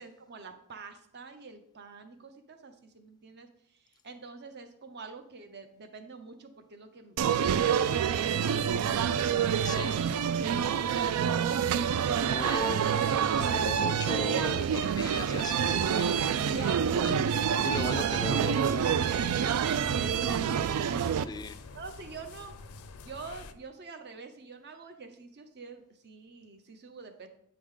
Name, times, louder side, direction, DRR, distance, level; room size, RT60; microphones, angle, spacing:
voice 1, 0.0-7.2 7.5-10.6 11.0-11.6 12.7-13.6 14.8-14.9 16.1-17.2 17.5-18.5 19.0-21.3 21.7-22.5 23.0-27.3, right 4 dB, 50° right, 0.7 m, -46 dB
sound 1, 7.2-21.2, right 8 dB, 70° right, 0.3 m, -27 dB
sound 2, 8.1-23.5, left 3 dB, 85° left, 0.6 m, -48 dB
voice 2, 9.6-10.1 12.0-12.8 13.5-16.8 17.0-17.2 17.5-19.2 21.3-21.6, left 4 dB, 20° left, 0.4 m, -38 dB
8.7 x 4.9 x 3.7 m
head